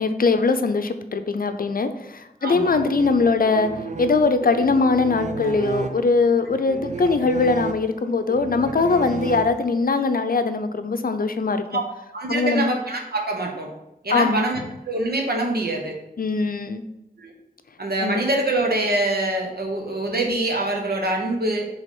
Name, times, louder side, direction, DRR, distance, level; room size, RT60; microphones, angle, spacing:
voice 1, 0.0-11.8 12.3-12.7 14.1-14.4 16.2-16.8 18.0-18.2, left 4 dB, 65° left, 9 dB, 0.5 m, -21 dB
voice 2, 2.4-2.8 11.7-11.8 12.1-13.7 14.0-14.6 14.8-16.0 17.2-17.3 17.8-21.7, right 2 dB, 90° right, 1 dB, 1.1 m, -24 dB
sound 1, 2.5-10.0, right 4 dB, 50° right, 0.5 m, -33 dB
5.2 x 3.5 x 5.4 m, 0.89 s
wide cardioid pair, 70°, 16 cm